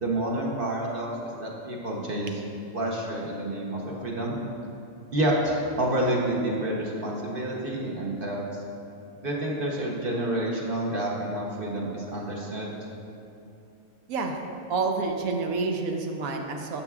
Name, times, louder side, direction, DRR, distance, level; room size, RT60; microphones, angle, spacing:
voice 1, 0.0-2.4 2.7-4.4 5.1-8.6 9.2-12.7, right 1 dB, 45° right, -3 dB, 1.0 m, -29 dB
voice 2, 14.1-14.4 14.7-16.8, right 4 dB, 80° right, 3 dB, 1.2 m, -28 dB
11.5 x 7.0 x 2.4 m, 2.7 s
omnidirectional pair, 1.4 m